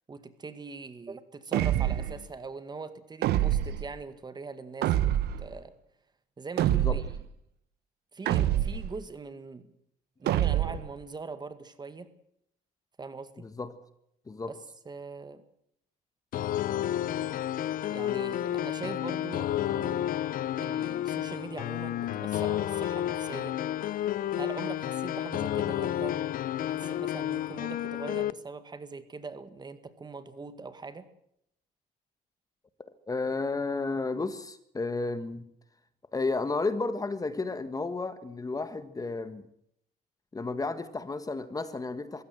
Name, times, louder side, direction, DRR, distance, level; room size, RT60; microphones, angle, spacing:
voice 1, 0.1-5.7 6.4-7.2 8.1-9.7 10.2-12.1 13.0-13.5 14.5-15.4 17.9-20.2 20.6-23.6 24.4-26.4 26.7-31.1, right 4 dB, 25° right, 12 dB, 2.0 m, -42 dB
sound 1, 1.5-2.2 3.2-3.9 4.8-5.5 6.6-7.2 8.3-8.9 10.3-10.9, right 12 dB, 75° right, 1.3 m, -26 dB
voice 2, 13.4-13.7 14.3-14.5 33.1-35.4 36.1-39.5 40.3-42.2, left 3 dB, 20° left, 12 dB, 1.6 m, -32 dB
sound 2, 16.3-28.3, left 12 dB, 55° left, 0.7 m, -31 dB
22.5 x 16.0 x 7.9 m, 0.73 s
cardioid pair, 110°, 17 cm